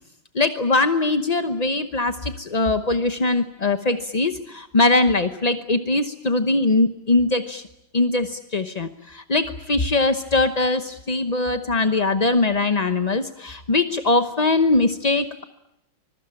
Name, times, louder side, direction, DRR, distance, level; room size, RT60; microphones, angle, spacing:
voice 1, 0.3-7.6 7.9-15.4, left 2 dB, 40° left, 9 dB, 0.6 m, -21 dB
25.5 x 22.0 x 8.9 m, 0.81 s
omnidirectional pair, 2.3 m